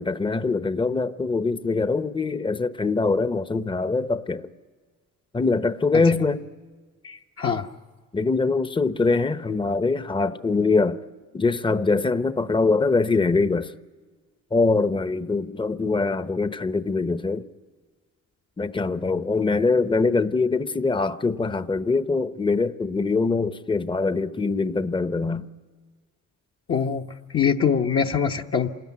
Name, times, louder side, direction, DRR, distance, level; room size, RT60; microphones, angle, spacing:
voice 1, 0.0-4.5 5.3-6.5 8.1-11.0 11.3-13.7 14.5-17.5 18.6-25.5, left 3 dB, 15° left, 0.9 m, -23 dB
voice 2, 7.0-7.7 26.7-27.0 27.3-28.7, left 7 dB, 45° left, 1.1 m, -23 dB
27.5 x 20.0 x 9.7 m
cardioid pair, 90°, 30 cm